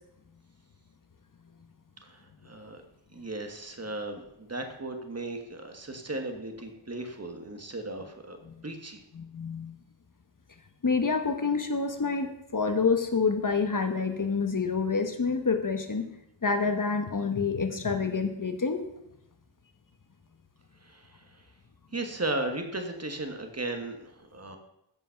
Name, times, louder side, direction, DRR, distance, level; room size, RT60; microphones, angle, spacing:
voice 1, 2.0-2.8 3.1-9.0 20.8-21.4 21.9-24.6, right 2 dB, 35° right, 5 dB, 1.5 m, -36 dB
voice 2, 9.2-9.7 10.8-16.0 16.4-18.8, left 4 dB, 45° left, 6 dB, 1.2 m, -27 dB
15.0 x 5.4 x 5.8 m, 0.82 s
wide cardioid pair, 95°, 46 cm